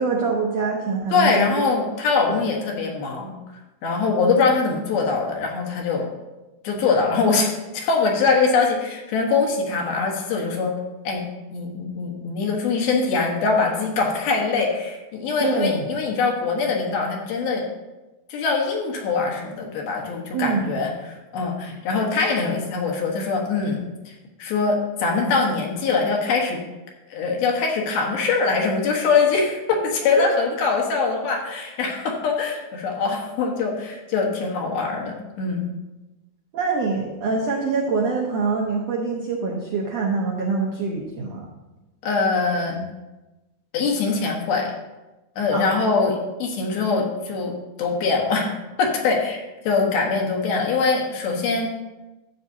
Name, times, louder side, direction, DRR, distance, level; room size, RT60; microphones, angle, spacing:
voice 1, 0.0-1.5 2.3-2.4 15.4-15.9 20.3-20.8 30.2-30.3 36.5-41.4 45.5-45.9, right 4 dB, 80° right, -1 dB, 1.5 m, -24 dB
voice 2, 1.1-3.4 3.8-6.1 6.6-10.7 11.0-17.6 18.3-24.1 24.4-26.6 27.1-35.7 42.0-42.8 43.7-44.7 45.4-48.5 48.8-51.7, left 4 dB, 80° left, 0 dB, 3.2 m, -23 dB
12.5 x 8.1 x 2.8 m, 1.1 s
omnidirectional pair, 4.4 m